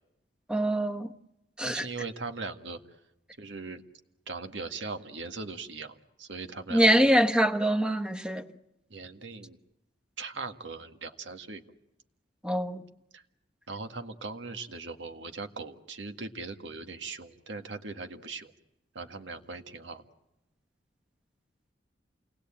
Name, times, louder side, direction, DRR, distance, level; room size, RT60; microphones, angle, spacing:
voice 1, 0.5-1.1 1.6-1.9 6.7-8.5 12.4-12.8, equal, 5° right, 1.1 m, -24 dB
voice 2, 1.6-2.8 3.4-3.8 4.3-7.1 8.9-9.6 10.2-11.6 13.1-13.2 13.7-18.5 18.9-20.0, right 3 dB, 85° right, 1.8 m, -39 dB
28.5 x 19.5 x 8.8 m
head